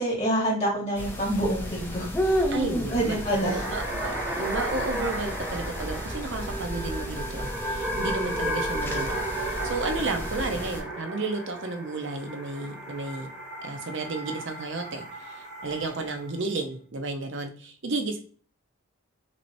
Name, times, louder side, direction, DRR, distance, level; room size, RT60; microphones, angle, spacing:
voice 1, 0.0-2.5 2.9-3.7, right 1 dB, 30° left, -6 dB, 2.3 m, -27 dB
sound 1, 1.0-10.8, equal, 10° left, 0.6 m, -33 dB
voice 2, 2.5-3.2 3.4-13.3 13.6-15.4 15.6-18.2, right 3 dB, 60° right, 5 dB, 0.8 m, -32 dB
sound 2, 2.9-16.3, right 1 dB, 5° right, 1.2 m, -34 dB
6.1 x 3.0 x 2.7 m, 0.42 s
head